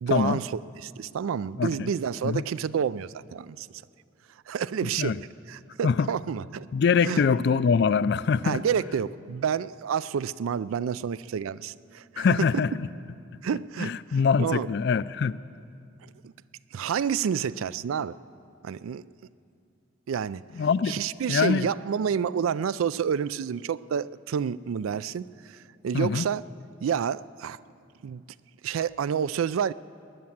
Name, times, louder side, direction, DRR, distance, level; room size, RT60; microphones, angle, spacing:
voice 1, 0.0-3.7 4.5-5.2 5.5-6.7 7.0-7.2 8.4-12.5 13.4-13.9 14.4-14.7 16.7-18.1 18.6-19.0 20.1-20.4 20.9-25.3 25.8-26.4 26.8-27.6 28.0-28.2 28.6-29.7, right 7 dB, 90° right, 0.3 m, -29 dB
voice 2, 1.6-1.9 2.2-2.4 4.8-5.2 5.8-6.1 6.7-8.6 12.2-12.9 13.8-15.4 20.6-21.0 21.3-21.7 25.9-26.3, left 6 dB, 55° left, 0.3 m, -24 dB
20.0 x 9.5 x 7.3 m
head